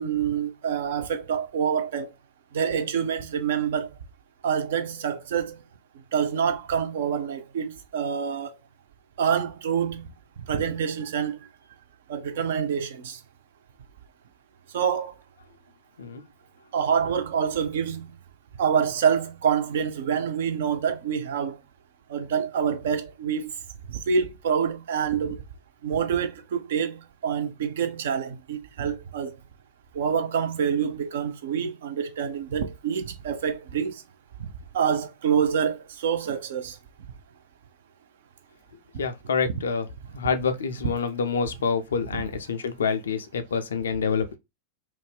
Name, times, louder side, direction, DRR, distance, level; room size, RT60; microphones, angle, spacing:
voice 1, 0.0-2.1 2.5-3.9 4.4-5.5 6.1-8.6 9.2-10.0 10.4-11.4 12.1-13.2 14.7-15.1 16.7-18.1 18.6-21.6 22.1-23.5 23.9-25.3 25.8-29.4 29.9-34.0 34.4-34.5 34.7-36.8 39.5-39.6 42.1-42.2, right 7 dB, 60° right, 0.5 m, -26 dB
voice 2, 39.0-39.9 40.1-44.4, left 5 dB, 65° left, 0.4 m, -27 dB
2.5 x 2.1 x 3.4 m
figure-of-eight pair, 90°, 0 cm